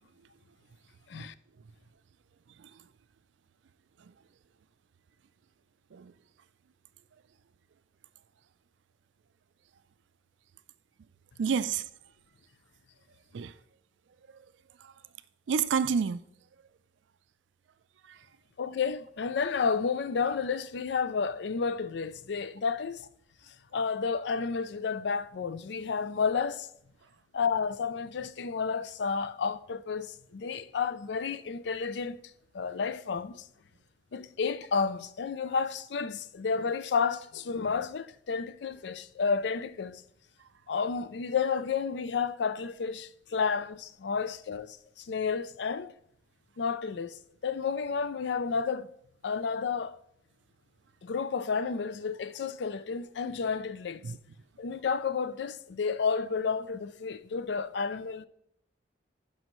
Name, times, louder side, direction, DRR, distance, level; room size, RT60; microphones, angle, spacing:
voice 1, 11.4-11.9 13.3-13.5 14.8-14.9 15.5-16.2 18.1-18.2 54.0-54.2, right 6 dB, 75° right, 0.4 m, -29 dB
voice 2, 18.6-23.1 23.5-26.7 27.3-32.2 32.5-33.5 34.1-40.0 40.7-45.9 46.6-48.9 49.2-50.0 51.0-54.0 54.6-58.3, left 5 dB, 65° left, 0.4 m, -31 dB
11.5 x 5.4 x 3.1 m
head